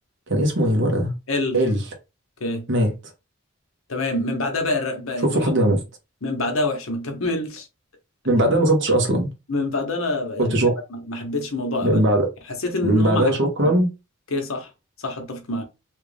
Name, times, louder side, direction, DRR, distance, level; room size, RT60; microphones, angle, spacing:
voice 1, 0.3-1.1 1.5-1.8 2.7-2.9 5.2-5.8 8.2-9.3 10.4-10.7 11.8-12.3 12.8-13.9, right 1 dB, 60° right, 1.1 m, -19 dB
voice 2, 1.3-1.6 2.4-2.7 3.9-5.4 6.2-7.7 9.5-12.0 12.6-13.3 13.6-13.7 14.3-14.7 15.0-15.6, left 2 dB, 80° left, 1.0 m, -26 dB
3.2 x 2.4 x 3.3 m
head